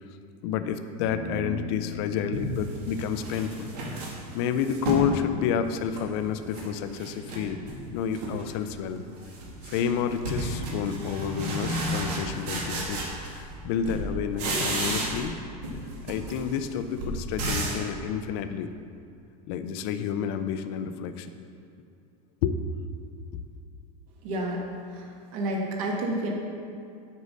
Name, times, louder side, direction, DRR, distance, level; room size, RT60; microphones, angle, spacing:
voice 1, 0.4-7.6 7.9-9.0 9.7-15.4 16.0-18.7 19.5-21.3 22.4-22.6, left 7 dB, 40° left, 10 dB, 0.5 m, -30 dB
Bass guitar, 1.1-7.3, left 2 dB, 25° left, 0.9 m, -42 dB
sound 1, 1.7-1.8 2.3-5.1 5.6-6.7 7.0-7.8 8.1-8.6 8.9-13.6 13.8-15.4 15.6-17.9, right 1 dB, 85° right, 2.1 m, -33 dB
voice 2, 24.2-24.6 24.9-25.0 25.3-26.3, right 1 dB, 55° right, -1 dB, 1.6 m, -29 dB
8.2 x 5.4 x 6.2 m, 2.4 s
supercardioid pair, 175°, 20 cm